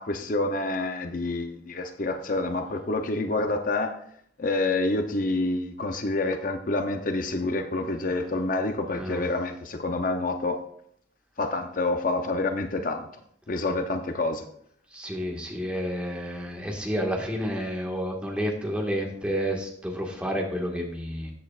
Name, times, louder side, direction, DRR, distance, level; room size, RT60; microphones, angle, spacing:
voice 1, 0.0-4.0 4.4-10.6 11.4-13.1 13.5-14.5, left 2 dB, 50° left, 7 dB, 0.6 m, -27 dB
voice 2, 14.9-21.3, equal, 5° right, 0 dB, 1.6 m, -30 dB
13.5 x 8.1 x 2.4 m, 0.67 s
head